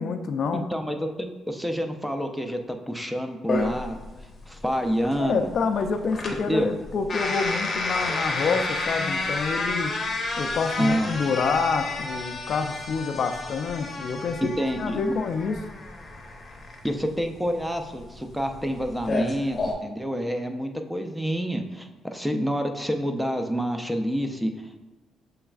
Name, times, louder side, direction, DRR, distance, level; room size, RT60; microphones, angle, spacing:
voice 1, 0.0-0.6 5.2-9.9 10.4-15.6, left 5 dB, 60° left, 7 dB, 0.4 m, -27 dB
voice 2, 0.5-4.0 4.5-5.5 6.5-6.7 10.8-11.1 14.6-15.2 16.8-24.8, equal, 5° right, 5 dB, 0.4 m, -28 dB
sound 1, 3.5-19.7, left 2 dB, 35° left, 0.8 m, -31 dB
6.9 x 3.2 x 2.4 m, 1.2 s
cardioid pair, 100°, 0 cm